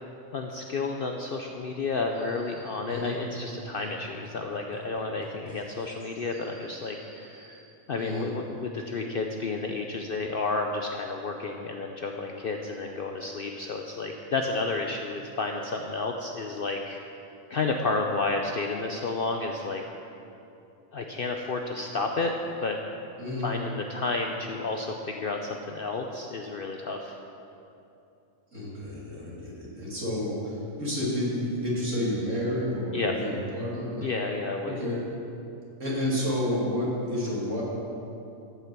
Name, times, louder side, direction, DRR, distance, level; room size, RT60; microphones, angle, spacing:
voice 1, 0.3-7.6 7.9-17.0 17.5-19.8 20.9-22.3 22.6-22.8 23.4-27.2 32.9-33.1 34.0-34.7, left 3 dB, 55° left, 3 dB, 0.6 m, -31 dB
sound 1, 1.6-6.0 6.8-6.9, equal, 35° left, 2.0 m, -49 dB
sound 2, 2.1-2.8 5.8-7.6, right 2 dB, 85° right, 2.8 m, -55 dB
voice 2, 23.2-23.5 28.5-34.1 34.6-35.0 35.8-37.6, left 1 dB, 60° right, -6 dB, 3.0 m, -30 dB
14.5 x 5.8 x 6.1 m, 2.8 s
omnidirectional pair, 1.5 m